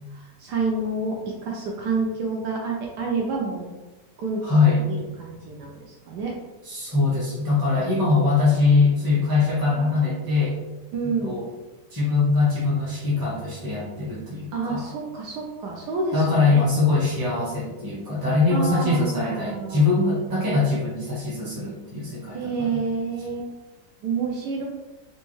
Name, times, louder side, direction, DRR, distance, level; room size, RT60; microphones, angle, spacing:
voice 1, 0.1-3.7 4.2-4.6 5.2-6.3 9.7-10.1 10.9-11.4 14.5-16.6 18.5-19.9 22.3-23.5 24.0-24.6, right 4 dB, 75° right, -2 dB, 1.1 m, -29 dB
voice 2, 4.4-4.8 6.6-10.6 11.2-11.5 11.9-14.9 16.1-22.8, left 3 dB, 15° right, -7 dB, 0.9 m, -22 dB
4.0 x 2.3 x 3.0 m, 1.1 s
omnidirectional pair, 2.0 m